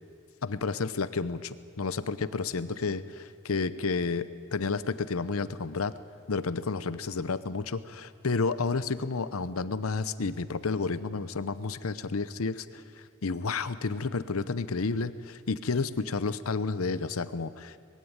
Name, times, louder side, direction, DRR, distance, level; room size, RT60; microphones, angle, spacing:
voice 1, 0.4-5.9 6.3-12.8 13.2-17.8, left 4 dB, 75° left, 14 dB, 0.8 m, -31 dB
20.5 x 16.0 x 9.7 m, 2.3 s
head